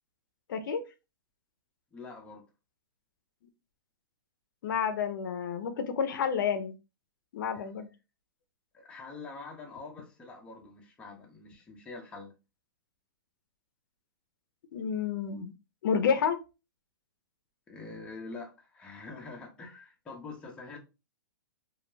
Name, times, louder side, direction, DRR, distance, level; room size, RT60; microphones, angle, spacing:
voice 1, 0.5-0.8 4.6-6.7 7.3-7.9 14.7-15.5 15.8-16.4, left 7 dB, 60° left, 0.5 m, -30 dB
voice 2, 1.9-2.4 7.5-7.7 8.7-12.3 17.7-20.8, left 3 dB, 10° left, 0.5 m, -45 dB
2.3 x 2.1 x 3.1 m
hypercardioid pair, 145°, 12 cm